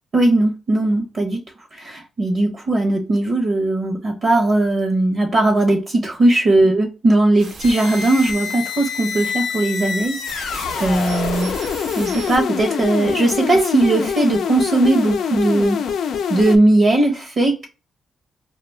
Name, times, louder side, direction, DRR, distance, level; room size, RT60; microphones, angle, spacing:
voice 1, 0.1-1.4 1.7-11.5 11.9-15.8 16.3-17.7, right 2 dB, 50° right, 0.7 m, -18 dB
sound 1, 7.4-12.4, right 2 dB, 85° right, 1.0 m, -37 dB
sound 2, 7.6-16.6, left 7 dB, 80° left, 0.4 m, -25 dB
2.3 x 2.2 x 3.3 m
cardioid pair, 100°, 0 cm